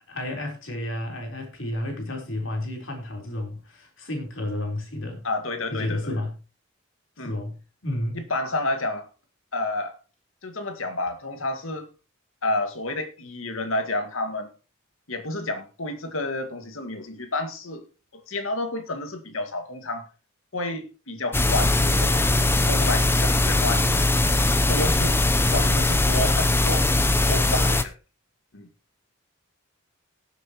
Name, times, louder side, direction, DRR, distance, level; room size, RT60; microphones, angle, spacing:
voice 1, 0.1-5.2 5.7-6.3 7.2-7.6 7.8-8.2, left 1 dB, 70° left, 4.1 m, -31 dB
voice 2, 5.2-6.2 7.2-7.4 8.1-9.1 9.5-10.0 10.4-11.9 12.4-14.5 15.1-17.8 18.1-20.1 20.5-24.0 24.7-25.2 25.5-26.9 27.3-28.0 28.5-28.7, left 2 dB, 85° left, 2.0 m, -30 dB
sound 1, 21.3-27.8, left 2 dB, 10° left, 0.7 m, -20 dB
18.5 x 8.0 x 3.1 m
head